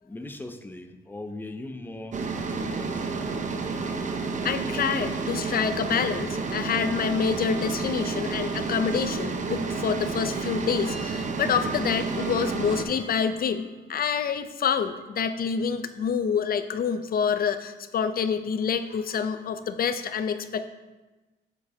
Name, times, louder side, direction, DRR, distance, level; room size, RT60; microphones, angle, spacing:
voice 1, 0.0-3.1, left 2 dB, 10° left, 7 dB, 0.6 m, -39 dB
sound 1, 2.1-12.8, right 4 dB, 40° right, 0.7 m, -30 dB
voice 2, 4.4-20.6, left 6 dB, 50° left, 11 dB, 0.5 m, -27 dB
sound 2, 8.9-13.9 14.1-14.3, right 1 dB, 80° right, 1.9 m, -49 dB
7.4 x 7.3 x 2.7 m, 1.2 s
cardioid pair, 90°, 20 cm